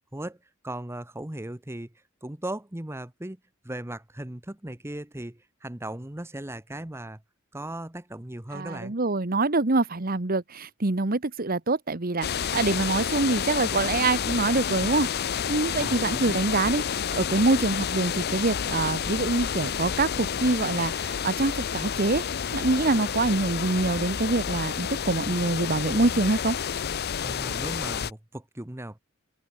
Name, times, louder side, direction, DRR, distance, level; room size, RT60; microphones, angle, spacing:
voice 1, 0.6-7.2 7.5-9.0 15.7-16.4 27.2-29.0, right 1 dB, 10° right, 1.0 m, -37 dB
voice 2, 8.5-15.1 15.5-16.8 17.1-22.3 22.5-26.6, right 2 dB, 45° right, 1.2 m, -25 dB
sound 1, 12.2-28.1, left 7 dB, 50° left, 0.6 m, -30 dB
open air
head